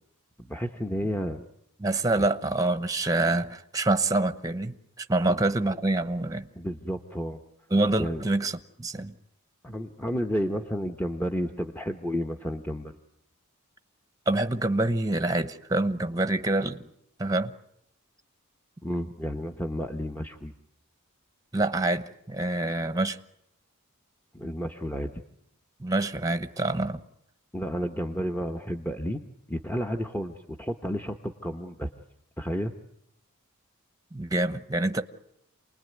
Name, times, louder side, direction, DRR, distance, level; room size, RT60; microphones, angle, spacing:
voice 1, 0.4-1.4 2.2-2.3 5.3-5.4 6.6-7.4 8.0-8.2 9.6-12.9 18.8-20.5 24.3-25.2 27.5-29.2 29.5-31.9 32.4-32.7, equal, 10° left, 1.1 m, -31 dB
voice 2, 1.8-6.5 7.7-9.1 14.3-16.8 17.2-17.5 21.5-23.2 25.8-27.0 34.1-35.0, right 2 dB, 15° right, 1.0 m, -26 dB
28.5 x 20.0 x 9.4 m
head